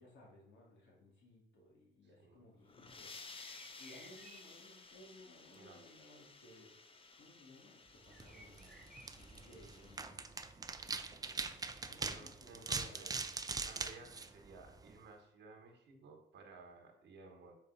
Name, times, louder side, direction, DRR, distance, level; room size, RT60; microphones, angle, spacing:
voice 1, 0.0-3.1 3.7-6.7 7.2-10.4 10.8-13.1, left 1 dB, 65° left, -2 dB, 2.3 m, -60 dB
sound 1, 2.5-10.0, left 4 dB, 30° left, 0.6 m, -56 dB
sound 2, 3.3-4.6 4.9-5.1 5.6-6.1 8.1-10.1, right 1 dB, ahead, 0.9 m, -61 dB
sound 3, 8.1-15.0, right 4 dB, 20° right, 0.5 m, -43 dB
voice 2, 12.0-13.1 13.4-17.6, right 4 dB, 65° right, 3 dB, 1.2 m, -56 dB
5.4 x 4.7 x 3.9 m, 0.80 s
cardioid pair, 90°, 20 cm